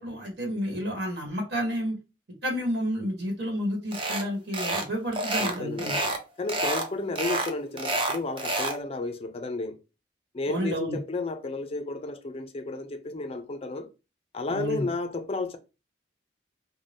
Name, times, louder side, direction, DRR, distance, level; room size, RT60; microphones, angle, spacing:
voice 1, 0.0-1.9 2.4-5.9 10.5-11.0 14.5-14.9, equal, 65° right, 1.2 m, -30 dB
sound 1, 3.9-4.3 4.5-4.9 5.1-6.2 6.5-6.9 7.2-8.8, right 2 dB, 30° right, 0.4 m, -28 dB
voice 2, 5.4-9.8 10.3-13.9 14.3-15.6, left 2 dB, 30° left, 0.4 m, -32 dB
2.6 x 2.1 x 3.4 m
head